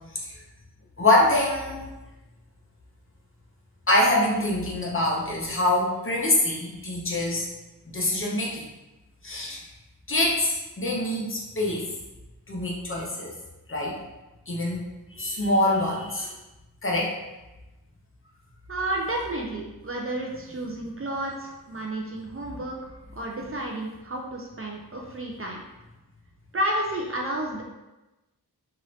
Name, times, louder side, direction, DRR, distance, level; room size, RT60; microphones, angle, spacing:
voice 1, 1.0-1.8 3.9-7.5 7.9-8.6 9.2-9.6 10.1-11.9 12.5-13.3 13.7-14.0 14.5-14.8 15.1-16.3 16.8-17.1, left 1 dB, 35° left, -3 dB, 0.7 m, -24 dB
voice 2, 18.7-25.6 26.5-27.6, right 1 dB, 35° right, -1 dB, 0.5 m, -31 dB
2.8 x 2.5 x 3.1 m, 1.0 s
wide cardioid pair, 85°, 38 cm